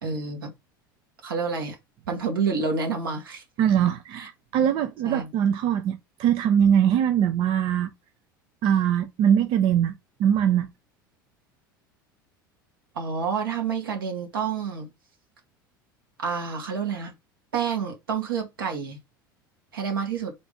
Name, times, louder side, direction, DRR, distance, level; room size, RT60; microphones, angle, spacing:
voice 1, 0.0-0.5 1.2-1.8 2.1-3.4 4.1-4.3 5.0-5.3 12.9-14.9 16.2-17.1 17.5-19.0 19.7-20.3, right 5 dB, 80° right, 1.8 m, -28 dB
voice 2, 3.6-7.9 8.6-10.7, right 9 dB, 50° right, 0.7 m, -22 dB
3.7 x 3.4 x 3.8 m
figure-of-eight pair, 75°, 11 cm